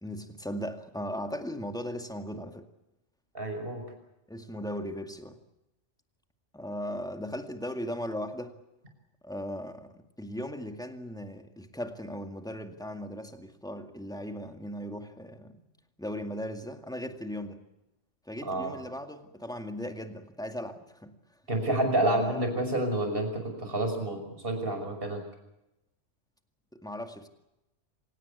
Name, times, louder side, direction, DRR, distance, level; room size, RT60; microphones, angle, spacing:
voice 1, 0.0-2.7 4.3-5.4 6.5-8.5 9.2-15.6 16.0-17.6 18.3-21.1 22.0-22.5 26.7-27.3, equal, 5° left, 6 dB, 2.1 m, -37 dB
voice 2, 3.3-3.8 18.4-18.7 21.5-25.2, right 1 dB, 50° right, 5 dB, 6.2 m, -29 dB
27.0 x 17.5 x 8.4 m, 0.92 s
omnidirectional pair, 1.2 m